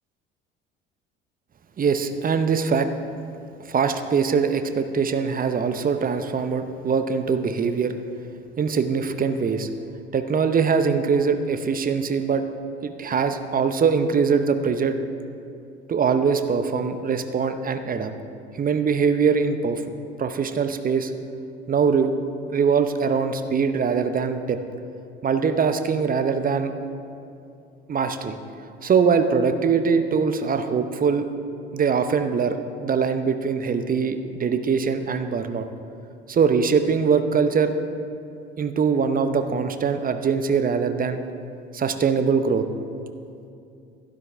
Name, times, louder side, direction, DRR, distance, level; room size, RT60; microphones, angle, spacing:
voice 1, 1.8-2.9 3.7-7.9 8.6-9.7 10.1-12.4 12.8-15.0 15.9-18.1 18.5-19.8 20.2-21.1 21.7-22.1 22.5-24.6 25.2-26.7 27.9-28.4 28.8-31.3 31.7-32.6 32.8-35.7 36.3-37.7 38.6-41.2 41.7-42.7, right 6 dB, 30° right, 9 dB, 0.8 m, -22 dB
13.0 x 12.0 x 3.5 m, 2.6 s
figure-of-eight pair, 60°, 30 cm